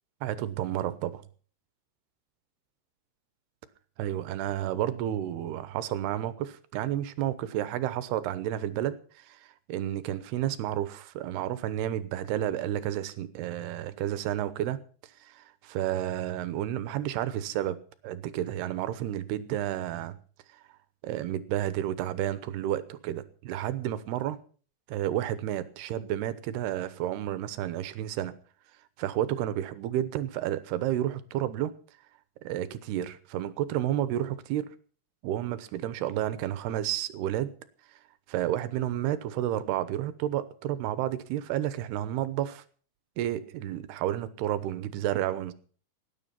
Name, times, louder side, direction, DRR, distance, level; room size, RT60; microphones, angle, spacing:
voice 1, 0.2-1.2 4.0-14.8 15.2-17.8 18.0-20.2 21.0-24.4 24.9-28.3 29.0-31.7 32.4-34.7 35.2-37.5 38.3-42.6 43.2-45.5, right 12 dB, 80° right, 14 dB, 2.9 m, -31 dB
18.0 x 10.0 x 5.7 m, 0.42 s
omnidirectional pair, 4.8 m